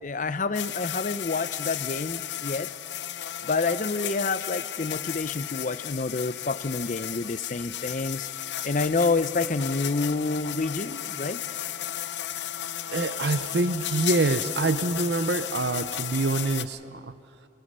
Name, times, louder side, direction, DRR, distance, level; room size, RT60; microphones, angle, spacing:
voice 1, 0.0-2.7 3.4-8.3 8.6-11.4, left 3 dB, 45° left, 14 dB, 0.6 m, -28 dB
sound 1, 0.5-16.6, left 11 dB, 80° left, 0.7 m, -34 dB
voice 2, 12.9-17.1, right 3 dB, 70° right, 12 dB, 0.7 m, -26 dB
27.5 x 18.5 x 5.6 m, 2.5 s
head